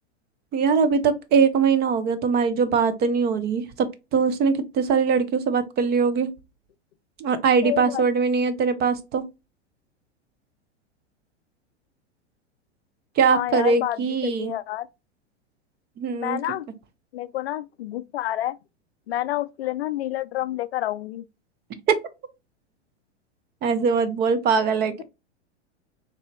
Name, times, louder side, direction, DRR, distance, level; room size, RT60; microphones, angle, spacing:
voice 1, 0.5-3.9 4.1-6.3 7.2-9.2 13.2-14.5 16.0-16.4 21.9-22.0 23.6-25.0, right 5 dB, 30° right, 0.7 m, -21 dB
voice 2, 7.6-8.0 13.3-14.9 16.1-16.7 17.1-18.6 19.1-21.2, left 14 dB, 65° left, 0.4 m, -29 dB
4.0 x 2.9 x 2.9 m
hypercardioid pair, 100°, 35 cm